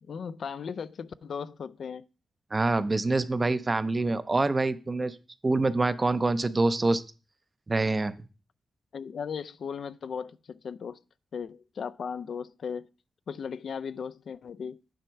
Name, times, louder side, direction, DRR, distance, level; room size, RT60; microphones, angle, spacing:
voice 1, 0.0-2.0 8.9-11.0 11.3-12.9 13.3-14.8, left 6 dB, 65° left, 0.3 m, -37 dB
voice 2, 2.5-5.2 5.4-7.0 7.7-8.2, right 2 dB, 25° right, 0.5 m, -26 dB
9.0 x 4.3 x 5.7 m
wide cardioid pair, 155°, 0 cm